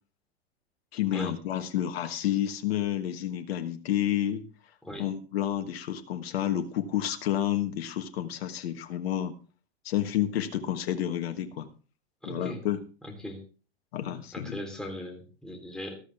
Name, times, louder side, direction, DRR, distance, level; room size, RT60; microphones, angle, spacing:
voice 1, 0.9-4.5 5.0-9.3 9.8-11.7 12.2-12.8 13.9-14.6, left 11 dB, 65° left, 8 dB, 1.4 m, -30 dB
voice 2, 12.2-12.6 13.0-13.4 14.3-16.0, equal, ahead, 1 dB, 3.3 m, -38 dB
13.5 x 13.0 x 3.4 m, 0.35 s
hypercardioid pair, 105°, 32 cm